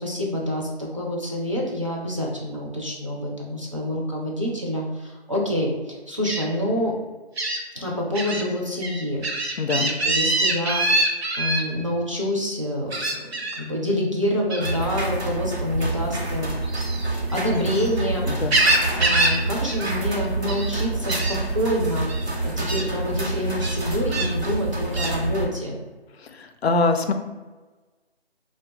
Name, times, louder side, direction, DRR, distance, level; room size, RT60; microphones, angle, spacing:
voice 1, 0.0-7.0 7.7-9.3 9.8-11.1 11.4-12.9 13.6-16.5 17.1-25.8, left 1 dB, 30° right, -4 dB, 0.4 m, -27 dB
Gull seagull, 6.2-6.4 7.4-7.6 8.1-8.4 8.8-11.6 12.9-13.6 14.5-14.8 16.6-17.9 18.3-19.4 19.7-19.9 20.2-20.7 21.1-21.4 22.1-22.2 22.7-22.9 23.6-24.3 24.9-25.1, right 2 dB, 75° right, 0.7 m, -24 dB
voice 2, 9.6-9.9 18.3-18.6 26.3-27.1, left 3 dB, 75° left, 7 dB, 0.5 m, -23 dB
sound 1, 14.6-25.5, right 2 dB, 90° right, 1.0 m, -27 dB
2.5 x 2.2 x 3.7 m, 1.2 s
figure-of-eight pair, 160°, 32 cm